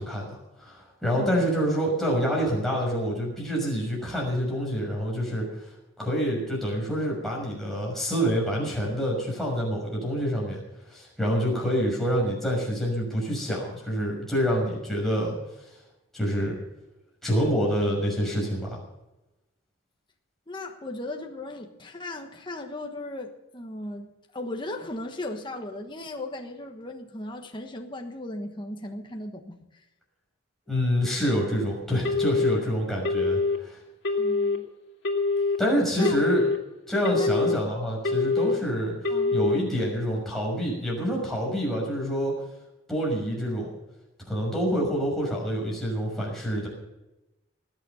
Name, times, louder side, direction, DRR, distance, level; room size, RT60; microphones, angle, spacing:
voice 1, 0.0-5.7 6.0-10.6 10.9-15.3 16.1-16.6 17.2-18.8 30.7-33.8 35.6-36.4 36.9-38.9 39.3-42.3 42.9-43.7 44.3-46.7, equal, ahead, -3 dB, 6.2 m, -27 dB
voice 2, 1.1-1.4 20.5-29.8 34.2-34.7 36.0-36.2 37.2-37.5 39.1-39.4, left 1 dB, 25° left, 3 dB, 1.3 m, -37 dB
Telephone, 32.0-32.6 33.0-33.6 34.0-34.6 35.0-35.6 36.0-36.6 37.0-37.6 38.0-38.6 39.0-39.6, left 3 dB, 55° left, 2.5 m, -24 dB
20.0 x 8.9 x 7.0 m, 0.97 s
head